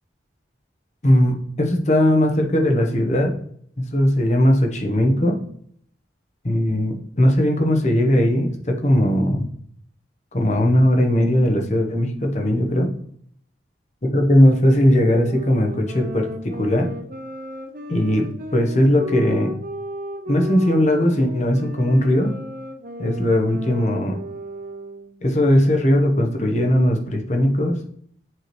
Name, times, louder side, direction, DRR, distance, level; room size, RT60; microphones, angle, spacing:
voice 1, 1.0-3.4 3.8-5.4 6.4-9.5 10.3-12.9 14.1-16.9 17.9-19.5 20.3-22.3 23.0-24.2 25.2-27.8, left 1 dB, 40° left, 3 dB, 1.0 m, -19 dB
sound 1, 15.2-25.2, equal, 50° right, 0.8 m, -34 dB
7.7 x 4.8 x 3.1 m, 0.63 s
head